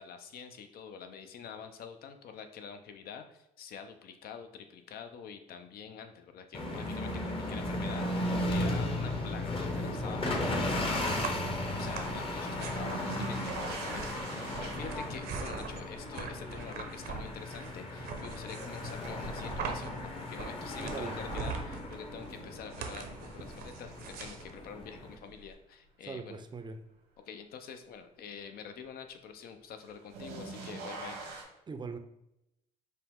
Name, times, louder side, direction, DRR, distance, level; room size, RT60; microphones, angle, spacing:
voice 1, 0.0-26.4 27.3-31.2, left 6 dB, 60° left, 7 dB, 0.6 m, -46 dB
sound 1, 6.5-25.2, left 1 dB, 30° left, 0.9 m, -36 dB
sound 2, 11.0-25.5, right 5 dB, 60° right, 0.7 m, -43 dB
sound 3, 12.6-19.6 20.0-20.7 22.3-22.4 24.0-24.1 29.8-31.4, right 3 dB, 80° right, 1.1 m, -44 dB
voice 2, 20.8-21.2 26.0-26.8 31.7-32.0, right 4 dB, 25° right, 7 dB, 0.5 m, -40 dB
5.4 x 2.1 x 3.6 m, 0.84 s
supercardioid pair, 70°, 18 cm